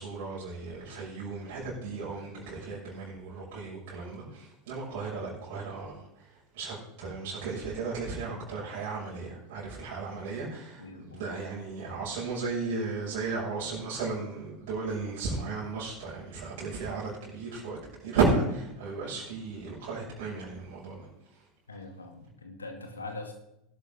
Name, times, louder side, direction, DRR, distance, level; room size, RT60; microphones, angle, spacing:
voice 1, 0.0-21.1 21.3-21.4, right 4 dB, 55° right, -7 dB, 5.9 m, -34 dB
voice 2, 10.8-11.2 21.7-23.3, left 2 dB, 80° left, 4 dB, 2.4 m, -42 dB
18.0 x 12.5 x 3.6 m, 0.84 s
figure-of-eight pair, 80°, 0 cm